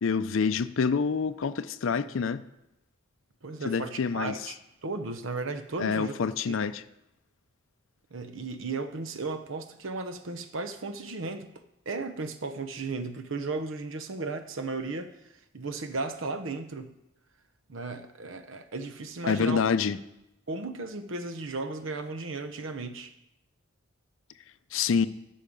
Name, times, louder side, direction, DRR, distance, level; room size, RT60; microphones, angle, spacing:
voice 1, 0.0-2.4 3.6-4.5 5.8-6.8 19.3-20.0 24.7-25.1, left 5 dB, 70° left, 0.4 m, -27 dB
voice 2, 3.4-6.2 6.5-6.6 8.1-11.5 11.9-15.1 15.5-16.9 17.7-19.6 20.5-23.1, right 3 dB, 70° right, 0.8 m, -35 dB
13.0 x 5.6 x 5.2 m
head